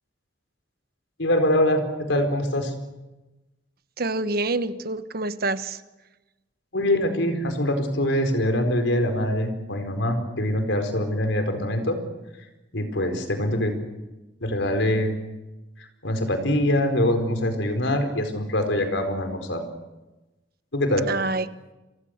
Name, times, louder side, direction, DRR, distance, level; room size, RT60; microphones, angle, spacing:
voice 1, 1.2-2.7 6.7-12.0 12.7-13.8 14.4-15.1 16.0-19.6 20.7-21.1, left 1 dB, 85° left, 6 dB, 4.6 m, -24 dB
voice 2, 4.0-5.8 21.1-21.5, right 2 dB, 55° right, 11 dB, 1.3 m, -26 dB
29.0 x 24.5 x 6.7 m, 1.1 s
head